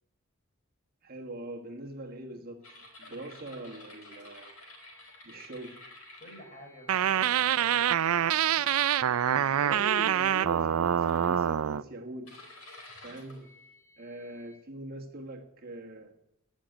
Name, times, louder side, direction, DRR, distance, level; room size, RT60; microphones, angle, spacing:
voice 1, 1.0-2.7 3.0-4.6 5.2-5.8 9.3-12.4 13.0-13.5 14.0-16.1, right 1 dB, 45° right, 2 dB, 1.4 m, -42 dB
sound 1, 2.6-7.2 7.7-8.1 8.7-9.4 9.9-10.3 11.0-11.7 12.3-14.6, left 2 dB, 90° left, 4.9 m, -52 dB
voice 2, 6.2-8.8, equal, 35° left, 1 dB, 4.7 m, -51 dB
sound 2, 6.9-11.8, right 9 dB, 80° right, 0.4 m, -26 dB
17.5 x 6.3 x 9.1 m, 0.83 s
head